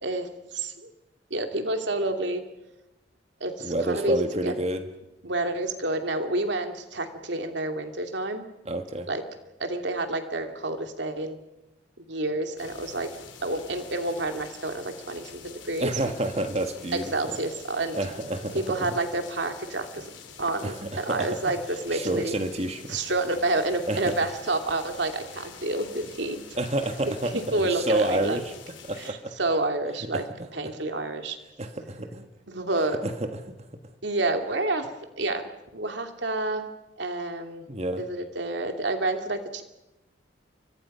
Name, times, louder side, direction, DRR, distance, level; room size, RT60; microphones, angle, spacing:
voice 1, 0.0-0.9 1.3-2.4 3.4-4.5 5.2-8.4 9.1-9.2 9.6-11.4 12.0-13.1 13.4-15.9 16.9-18.0 18.5-20.1 20.4-22.3 22.9-26.4 27.3-28.4 29.0-30.2 30.5-31.4 32.5-33.0 34.0-34.9 35.2-35.4 35.7-36.7 37.0-37.7 38.0-39.6, right 2 dB, 70° right, 6 dB, 2.8 m, -29 dB
voice 2, 3.6-4.9 8.6-9.1 15.8-17.4 17.9-18.9 20.6-21.3 21.9-23.0 23.9-24.1 26.5-28.5 28.9-29.3 30.1-30.5 31.6-32.3 33.0-33.5 37.7-38.0, right 1 dB, 35° right, 7 dB, 1.5 m, -29 dB
sound 1, 12.6-29.1, left 6 dB, 80° left, 4.2 m, -47 dB
29.0 x 25.0 x 5.6 m, 0.95 s
head